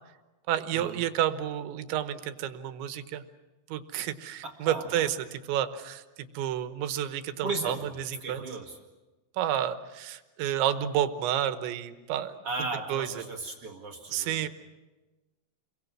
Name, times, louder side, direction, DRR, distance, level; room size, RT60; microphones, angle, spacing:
voice 1, 0.5-3.3 3.7-8.5 9.4-12.4 12.9-13.2 14.1-14.5, right 11 dB, 80° right, 10 dB, 3.4 m, -30 dB
voice 2, 4.4-5.1 7.4-7.9 8.2-8.8 12.4-14.5, right 3 dB, 50° right, 1 dB, 2.0 m, -36 dB
30.0 x 23.0 x 6.1 m, 1.1 s
omnidirectional pair, 5.3 m